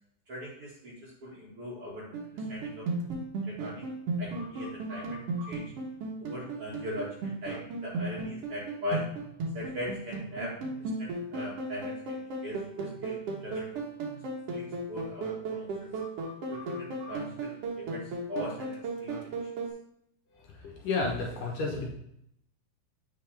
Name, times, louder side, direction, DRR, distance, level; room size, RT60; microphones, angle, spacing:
voice 1, 0.3-2.9 3.4-3.9 4.2-5.7 6.2-9.1 9.5-13.8 14.5-15.9 16.5-19.2, left 1 dB, 45° right, -6 dB, 2.1 m, -40 dB
sound 1, 2.1-19.7, right 2 dB, 75° right, 1.4 m, -36 dB
voice 2, 20.3-21.9, left 3 dB, 65° left, -1 dB, 2.5 m, -32 dB
8.1 x 5.6 x 3.3 m, 0.73 s
omnidirectional pair, 4.4 m